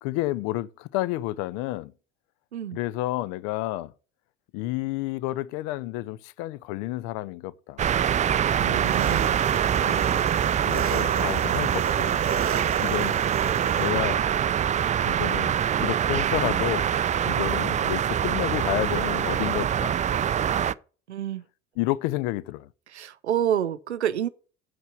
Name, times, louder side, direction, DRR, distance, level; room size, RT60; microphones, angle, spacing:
voice 1, 0.0-1.9 2.7-3.9 4.5-7.8 9.8-10.1 10.7-12.2 12.8-13.2 13.8-14.2 15.1-15.5 15.8-16.9 17.2-19.9 21.8-22.7, left 16 dB, 60° left, 0.7 m, -30 dB
sound 1, 7.8-20.7, right 9 dB, 25° right, 0.4 m, -24 dB
voice 2, 8.5-9.4 21.1-21.4 22.9-24.3, right 10 dB, 85° right, 0.7 m, -28 dB
Engine, 8.6-13.9, right 8 dB, 40° right, 1.2 m, -33 dB
8.1 x 7.7 x 6.7 m
figure-of-eight pair, 65°, 33 cm